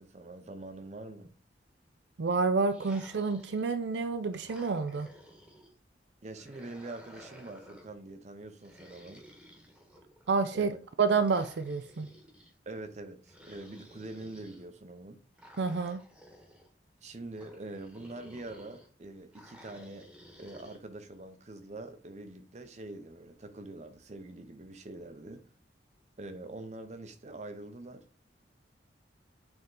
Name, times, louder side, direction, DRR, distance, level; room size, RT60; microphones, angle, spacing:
voice 1, 0.0-1.3 6.2-9.3 10.5-10.8 12.7-15.2 17.0-20.1 20.4-25.4 26.2-28.0, right 2 dB, 40° right, 0.7 m, -44 dB
voice 2, 2.2-5.1 10.3-10.7 11.0-12.1 15.6-16.0, right 4 dB, 75° right, 0.5 m, -29 dB
sound 1, 2.6-3.8 4.3-5.7 6.3-8.0 8.6-10.3 11.2-12.5 13.3-14.6 15.4-16.7 17.3-18.9 19.3-20.8, equal, 5° right, 1.2 m, -54 dB
7.8 x 3.6 x 3.8 m
head